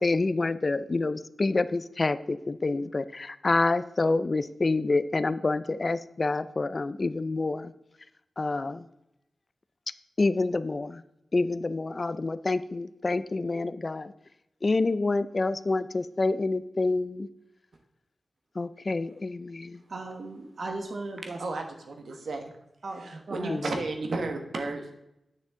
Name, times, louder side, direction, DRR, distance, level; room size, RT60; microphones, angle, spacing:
voice 1, 0.0-7.7 8.4-8.9 10.2-11.0 11.3-14.1 14.6-17.3 18.6-19.8 23.5-23.7, left 3 dB, 35° left, 14 dB, 0.3 m, -27 dB
voice 2, 19.9-21.4 22.8-23.6, right 2 dB, 55° right, 3 dB, 1.0 m, -37 dB
voice 3, 21.4-22.4 23.0-24.9, right 3 dB, 85° right, 4 dB, 1.3 m, -33 dB
9.6 x 6.4 x 3.6 m, 0.85 s
wide cardioid pair, 120°, 0 cm